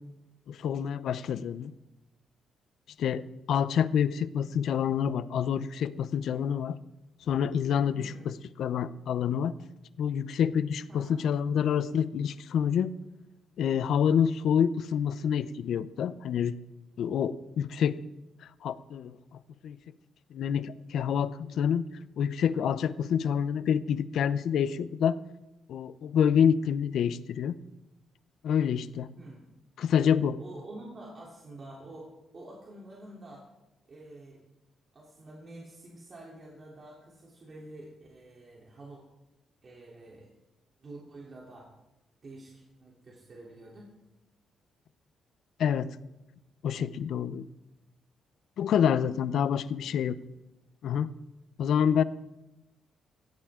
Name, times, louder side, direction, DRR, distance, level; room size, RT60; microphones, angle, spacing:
voice 1, 0.5-1.7 3.0-6.8 7.3-9.5 10.0-12.9 13.6-16.5 17.0-18.0 18.6-19.2 19.6-19.8 20.3-21.9 22.2-25.2 25.7-27.6 28.4-29.1 29.8-30.4 45.6-46.0 46.6-47.5 48.6-50.2 50.8-51.1 51.6-52.0, left 8 dB, 75° left, 15 dB, 0.7 m, -27 dB
voice 2, 7.9-8.3 10.9-11.2 29.1-29.4 30.4-33.5 33.9-34.4 34.9-39.0 39.6-40.3 40.8-41.7 42.2-43.9 49.8-49.9, right 2 dB, 40° right, -3 dB, 3.3 m, -48 dB
16.5 x 16.0 x 3.8 m, 0.98 s
cardioid pair, 95°, 0 cm